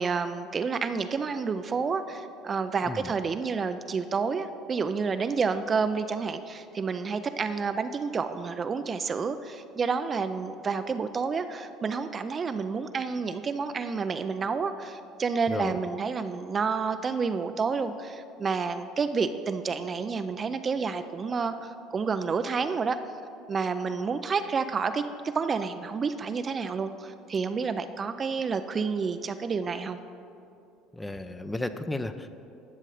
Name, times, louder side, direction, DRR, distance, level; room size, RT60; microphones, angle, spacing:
voice 1, 0.0-23.0 23.5-30.0, right 5 dB, 35° right, 10 dB, 0.4 m, -29 dB
voice 2, 15.5-15.8 30.9-32.3, left 1 dB, 10° left, 10 dB, 0.6 m, -33 dB
11.5 x 6.5 x 4.9 m, 2.6 s
hypercardioid pair, 80°, 0 cm